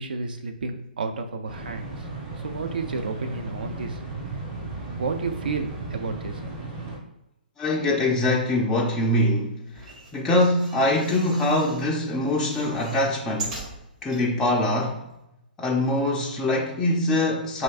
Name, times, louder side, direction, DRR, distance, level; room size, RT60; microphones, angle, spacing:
voice 1, 0.0-2.1 2.4-4.0 5.0-6.4, right 4 dB, 65° right, 7 dB, 0.4 m, -31 dB
sound 1, 1.5-7.0, right 2 dB, 20° right, 0.7 m, -35 dB
voice 2, 7.6-9.6 10.1-13.6 14.0-15.0 15.6-17.6, left 1 dB, 10° left, -3 dB, 0.3 m, -23 dB
sound 2, 9.7-11.9 12.3-14.2 14.8-14.9 15.1-15.2, right 3 dB, 45° right, 1.4 m, -40 dB
3.1 x 2.6 x 2.4 m, 0.88 s
figure-of-eight pair, 120°, 5 cm